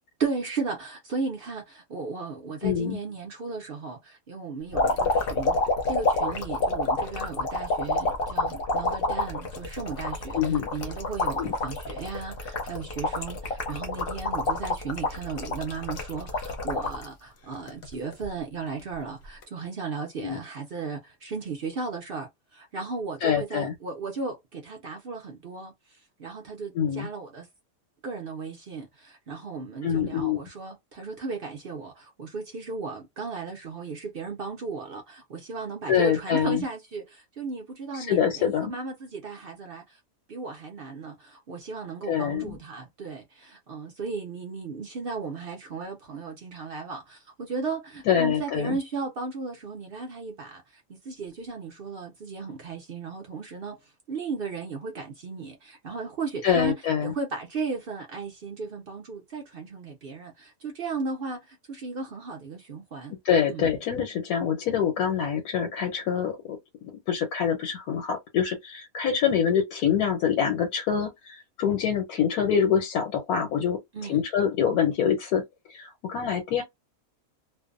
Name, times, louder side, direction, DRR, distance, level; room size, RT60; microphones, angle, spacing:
voice 1, 0.2-5.6 5.9-25.7 26.2-27.5 28.0-40.0 40.3-53.8 54.1-56.8 57.0-63.2 63.5-63.7 73.9-74.3, right 4 dB, 55° right, 0.7 m, -35 dB
voice 2, 2.6-3.0 10.3-10.7 11.4-11.5 20.2-20.4 23.2-23.7 26.7-27.1 29.8-30.4 35.9-36.6 37.9-38.7 42.1-42.6 48.1-48.8 56.4-57.1 63.2-73.8 74.1-75.4 75.7-76.6, left 8 dB, 90° left, 1.2 m, -25 dB
sound 1, 4.7-17.1 17.5-18.3 19.3-19.4, left 2 dB, 55° left, 0.7 m, -28 dB
2.6 x 2.1 x 2.4 m
omnidirectional pair, 1.5 m